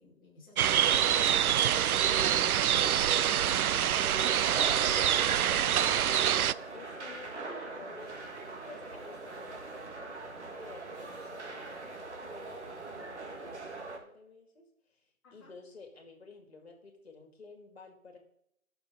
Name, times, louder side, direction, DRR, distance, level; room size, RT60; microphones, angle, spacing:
voice 1, 0.0-2.3 3.1-4.3 4.6-4.9 15.2-15.5, left 2 dB, 15° left, -6 dB, 2.3 m, -53 dB
sound 1, 0.6-6.5, right 10 dB, 90° right, 0.5 m, -26 dB
sound 2, 3.9-14.0, right 3 dB, 50° right, 1.9 m, -41 dB
voice 2, 6.4-8.2 8.7-15.0 15.3-18.2, left 3 dB, 45° left, 4 dB, 2.6 m, -52 dB
19.5 x 6.7 x 3.8 m, 0.75 s
hypercardioid pair, 175°, 43 cm